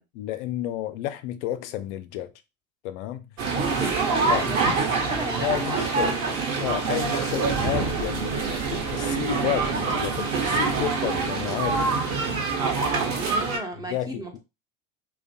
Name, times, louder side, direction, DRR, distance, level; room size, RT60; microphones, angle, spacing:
voice 1, 0.2-2.3 2.8-3.4 4.3-4.5 5.4-6.2 6.6-8.4 8.7-11.9 13.9-14.4, left 13 dB, 55° left, 0.5 m, -31 dB
voice 2, 3.4-6.5 13.1-14.4, right 1 dB, 10° right, 0.5 m, -35 dB
sound 1, 3.4-13.6, right 4 dB, 40° right, 0.8 m, -25 dB
sound 2, 6.7-7.1 7.4-10.0, right 4 dB, 80° right, 0.9 m, -36 dB
2.5 x 2.2 x 2.5 m
hypercardioid pair, 75°, 41 cm